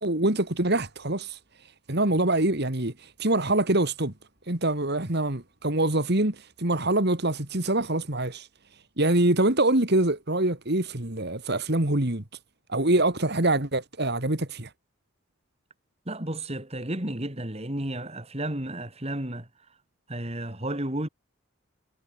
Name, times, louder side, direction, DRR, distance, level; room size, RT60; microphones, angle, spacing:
voice 1, 0.0-1.4 1.9-2.9 3.2-4.1 4.5-8.5 9.0-12.2 12.7-14.7, right 2 dB, 50° right, 2.5 m, -24 dB
voice 2, 16.1-19.5 20.1-21.1, right 1 dB, 30° right, 3.1 m, -32 dB
head